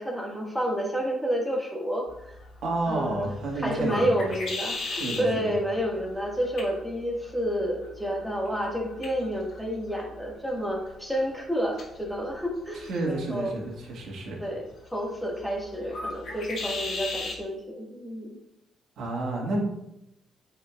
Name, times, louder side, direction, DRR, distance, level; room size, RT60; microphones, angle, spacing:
voice 1, 0.0-2.4 2.9-3.3 3.6-13.5 14.4-18.4, equal, ahead, -2 dB, 1.8 m, -30 dB
sound 1, 2.1-17.4, left 3 dB, 65° left, 2.0 m, -40 dB
voice 2, 2.6-4.3 5.0-5.6 12.9-14.4 19.0-19.6, right 2 dB, 70° right, -1 dB, 1.7 m, -30 dB
8.8 x 4.8 x 2.4 m, 0.86 s
cardioid pair, 90°, 0 cm